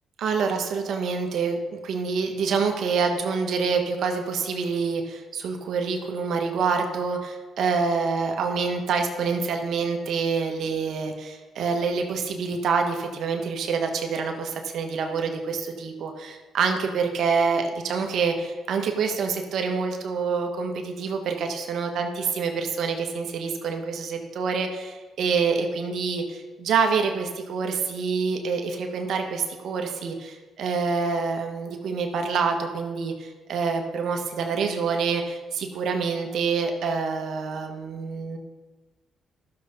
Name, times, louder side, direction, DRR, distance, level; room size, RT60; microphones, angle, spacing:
voice 1, 0.2-38.4, right 5 dB, 70° right, 4 dB, 1.4 m, -26 dB
13.0 x 6.9 x 5.3 m, 1.2 s
cardioid pair, 90°, 0 cm